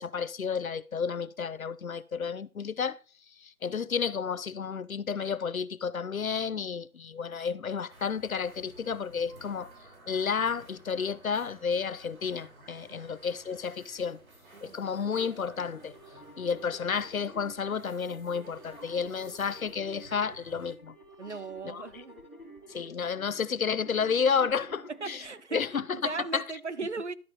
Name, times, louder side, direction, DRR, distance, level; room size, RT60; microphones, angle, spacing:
voice 1, 0.0-3.0 3.4-9.7 10.1-14.2 14.6-15.9 16.4-20.9 21.6-21.8 22.7-25.2 25.5-26.4, left 6 dB, 70° left, 0.7 m, -31 dB
sound 1, 7.9-20.8, right 2 dB, 70° right, 3.3 m, -54 dB
sound 2, 15.5-25.4, right 1 dB, 10° left, 1.1 m, -51 dB
voice 2, 21.2-22.2 24.4-24.5 24.9-25.7 26.0-27.1, right 4 dB, 50° right, 0.6 m, -37 dB
12.0 x 5.4 x 4.8 m
figure-of-eight pair, 170°, 44 cm